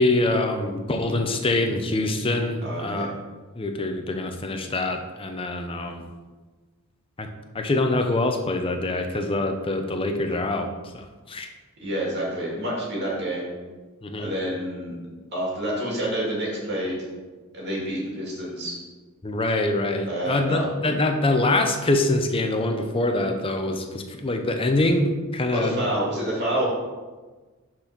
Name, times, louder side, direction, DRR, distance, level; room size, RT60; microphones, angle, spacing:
voice 1, 0.0-3.1 3.5-6.1 7.2-7.3 7.5-10.7 10.9-11.5 14.0-14.3 19.2-25.8, left 2 dB, 25° left, 4 dB, 0.7 m, -24 dB
voice 2, 2.6-3.1 11.8-13.5 14.1-15.0 15.3-17.0 17.5-18.8 20.1-20.7 25.5-26.7, right 1 dB, 55° right, -4 dB, 2.2 m, -28 dB
6.4 x 4.1 x 6.0 m, 1.3 s
head